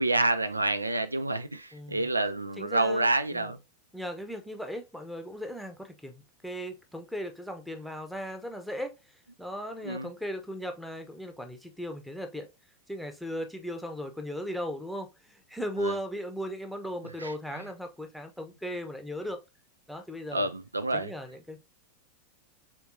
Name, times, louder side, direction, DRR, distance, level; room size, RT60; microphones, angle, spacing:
voice 1, 0.0-3.6 9.8-10.1 15.8-15.9 17.2-17.3 20.3-21.1, right 2 dB, 80° right, 0.3 m, -28 dB
voice 2, 1.7-2.1 2.6-3.5 3.9-9.0 9.4-12.5 12.9-19.4 19.9-20.5 20.9-21.6, equal, ahead, 0.8 m, -37 dB
4.3 x 3.6 x 2.6 m
figure-of-eight pair, 90°, 0 cm